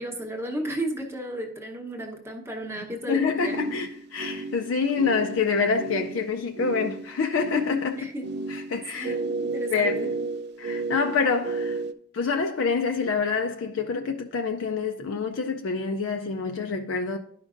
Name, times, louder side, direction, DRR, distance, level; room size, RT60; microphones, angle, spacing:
voice 1, 0.0-3.8 7.9-8.3 8.9-10.1, right 1 dB, 10° right, 0.9 m, -34 dB
voice 2, 3.1-8.1 8.5-9.1 9.7-10.0 10.6-11.8 12.1-17.2, left 5 dB, 65° left, 0.4 m, -26 dB
sound 1, 3.4-11.9, right 3 dB, 55° right, 0.4 m, -33 dB
11.5 x 5.1 x 2.5 m
head